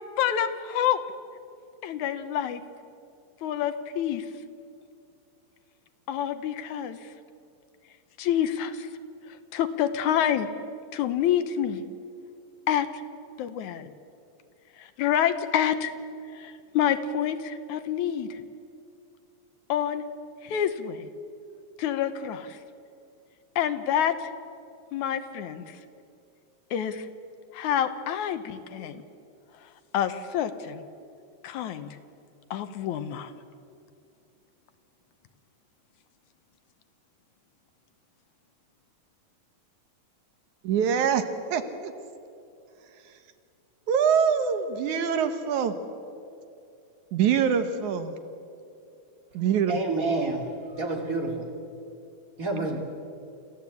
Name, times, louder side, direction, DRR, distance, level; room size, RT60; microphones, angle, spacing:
voice 1, 0.2-1.0 1.8-2.6 3.4-4.3 6.1-7.0 8.2-8.9 9.5-10.5 10.9-11.8 12.7-12.9 13.4-13.9 14.8-15.9 16.3-18.4 19.7-20.0 20.4-21.1 21.8-22.6 23.6-24.3 24.9-25.8 26.7-27.1 27.5-29.0 29.9-30.8 31.4-31.9 32.5-33.3, left 9 dB, 80° left, 2.3 m, -27 dB
voice 2, 40.6-41.2 41.5-41.9 43.9-45.7 47.1-48.1 49.3-49.8, right 7 dB, 75° right, 2.5 m, -24 dB
voice 3, 49.7-51.5 52.4-52.8, right 3 dB, 30° right, 3.0 m, -29 dB
27.0 x 15.0 x 8.4 m
omnidirectional pair, 3.5 m